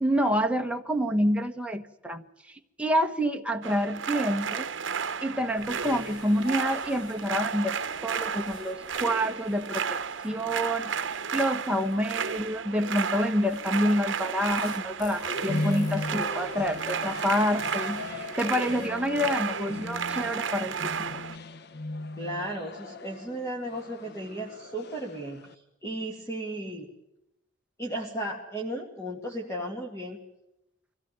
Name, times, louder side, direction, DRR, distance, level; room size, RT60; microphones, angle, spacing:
voice 1, 0.0-4.7 5.2-7.7 8.0-10.0 10.2-21.2, equal, 5° right, 4 dB, 1.2 m, -28 dB
sound 1, 3.6-21.4, right 6 dB, 70° right, 0.9 m, -33 dB
sound 2, 5.5-12.6 13.3-18.9, left 1 dB, 80° left, 4.6 m, -50 dB
sound 3, 15.3-25.5, left 2 dB, 55° left, 0.9 m, -37 dB
voice 2, 22.2-26.9 27.8-30.2, right 1 dB, 15° left, 0 dB, 2.3 m, -35 dB
24.0 x 16.5 x 9.4 m, 0.87 s
head